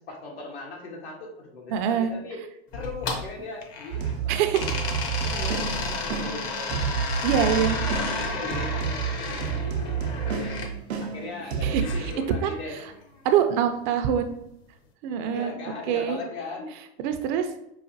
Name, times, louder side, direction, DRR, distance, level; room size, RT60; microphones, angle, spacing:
voice 1, 0.0-2.4 2.7-4.5 5.2-9.2 9.8-10.6 11.0-13.0 15.2-16.7, left 3 dB, 80° left, -1 dB, 1.3 m, -39 dB
voice 2, 1.7-2.1 4.3-4.8 7.2-7.8 11.6-11.8 12.4-12.6 13.2-14.3 15.0-15.5 15.9-16.2 17.0-17.5, right 8 dB, 50° right, 8 dB, 0.5 m, -24 dB
sound 1, 2.7-4.2 4.5-10.7 11.8-12.9, left 4 dB, 40° left, 0.7 m, -32 dB
sound 2, 3.9-12.1, right 7 dB, 85° right, 0.7 m, -30 dB
4.9 x 2.4 x 2.6 m, 0.80 s
hypercardioid pair, 115°, 31 cm